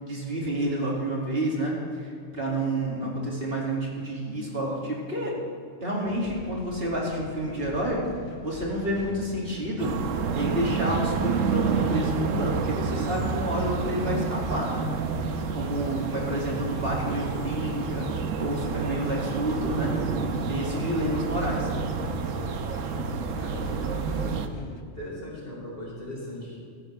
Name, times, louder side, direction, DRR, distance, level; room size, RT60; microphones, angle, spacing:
voice 1, 0.0-5.4 5.8-8.0 8.4-9.9 10.3-14.8 15.5-18.1 18.4-19.9 20.3-21.7, right 1 dB, 50° right, -4 dB, 2.6 m, -29 dB
sound 1, 6.0-24.8, left 2 dB, 30° left, 0.6 m, -44 dB
sound 2, 9.8-24.5, right 5 dB, 90° right, 1.2 m, -29 dB
voice 2, 23.4-26.6, left 1 dB, 45° left, -5 dB, 4.3 m, -40 dB
15.5 x 14.5 x 3.3 m, 2.4 s
omnidirectional pair, 1.3 m